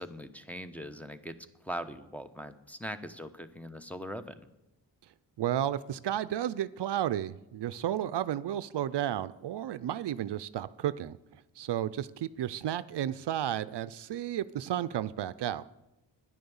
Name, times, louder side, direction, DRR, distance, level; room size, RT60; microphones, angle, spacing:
voice 1, 0.0-1.4 1.6-4.5, equal, 5° left, 6 dB, 0.9 m, -41 dB
voice 2, 5.4-11.2 11.6-15.7, right 11 dB, 65° right, 15 dB, 0.5 m, -32 dB
10.5 x 10.0 x 7.1 m, 0.96 s
cardioid pair, 60°, 44 cm